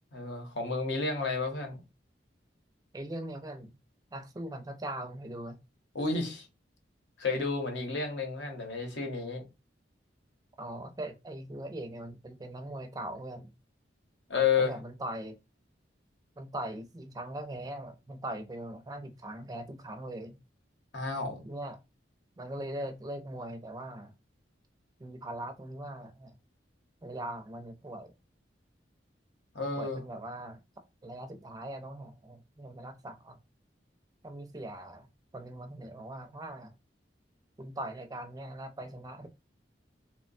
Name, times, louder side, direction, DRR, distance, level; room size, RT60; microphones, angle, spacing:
voice 1, 0.1-1.8 5.9-6.5 7.2-9.4 14.3-14.8 20.9-21.5 29.5-30.0, left 5 dB, 70° left, 0.8 m, -31 dB
voice 2, 2.9-3.8 4.1-5.6 10.6-13.5 14.6-15.4 16.4-20.4 21.4-21.8 22.4-24.1 25.0-26.4 27.0-28.1 29.8-30.6 31.0-33.4 34.2-35.1 35.3-36.7 37.6-39.3, right 1 dB, 20° right, 0.4 m, -40 dB
3.0 x 2.1 x 2.5 m
head